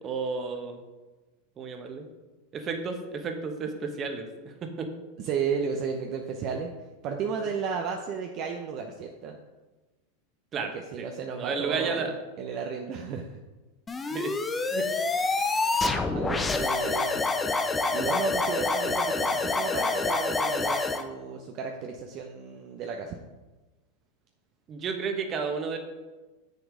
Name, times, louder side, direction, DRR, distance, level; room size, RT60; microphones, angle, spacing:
voice 1, 0.0-0.8 1.6-2.1 2.5-4.9 7.4-7.5 10.5-11.1 11.4-12.2 14.1-14.3 14.7-14.9 24.7-25.8, right 5 dB, 35° right, 5 dB, 1.3 m, -32 dB
voice 2, 5.2-6.7 7.0-9.4 10.6-13.4 16.1-17.2 17.9-23.2, right 5 dB, 50° right, 2 dB, 0.8 m, -33 dB
sound 1, 13.9-21.0, left 3 dB, 15° left, 0.7 m, -27 dB
7.1 x 6.7 x 5.0 m, 1.2 s
hypercardioid pair, 115°, 0 cm